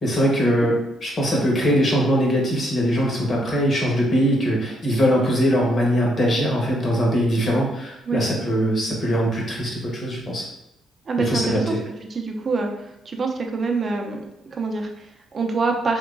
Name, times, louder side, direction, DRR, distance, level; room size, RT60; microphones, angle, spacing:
voice 1, 0.0-0.7 1.0-10.4 11.2-11.8, equal, 40° left, -2 dB, 1.2 m, -21 dB
voice 2, 11.1-11.8 12.1-16.0, right 4 dB, 40° right, 3 dB, 0.5 m, -26 dB
3.6 x 2.9 x 2.5 m, 0.83 s
cardioid pair, 90°, 0 cm